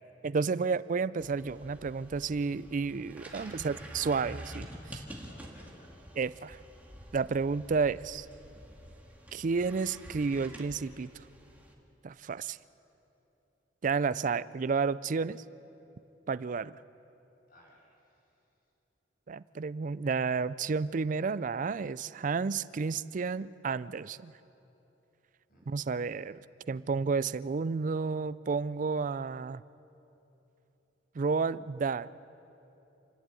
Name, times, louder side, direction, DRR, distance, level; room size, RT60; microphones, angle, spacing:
voice 1, 0.2-4.7 6.2-6.6 7.1-8.3 9.3-11.1 12.0-12.6 13.8-15.4 16.3-16.8 19.3-24.3 25.7-26.4 26.7-29.6 31.2-32.1, right 5 dB, 45° right, 18 dB, 0.4 m, -31 dB
sound 1, 1.2-11.7, equal, 10° right, 2.0 m, -48 dB
voice 2, 3.5-3.8 4.9-5.9 17.5-18.5 25.5-26.2, right 1 dB, 50° left, -2 dB, 6.5 m, -58 dB
28.5 x 11.0 x 9.1 m, 3.0 s
head